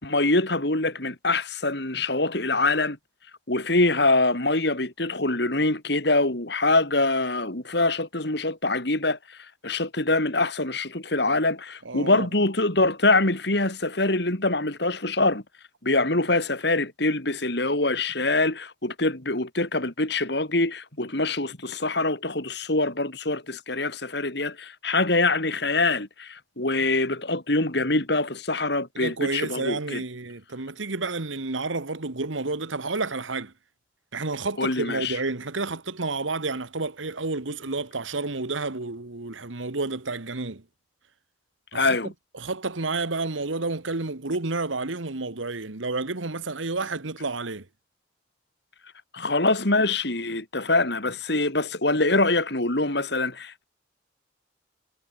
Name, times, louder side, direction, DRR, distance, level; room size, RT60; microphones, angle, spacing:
voice 1, 0.0-3.0 3.5-9.4 9.6-15.4 15.8-30.0 34.6-35.2 41.7-42.1 49.1-53.6, left 2 dB, 55° left, 3.3 m, -24 dB
voice 2, 11.8-12.3 28.9-33.5 34.1-40.6 41.7-42.0 42.4-47.6, right 3 dB, 80° right, 1.6 m, -30 dB
head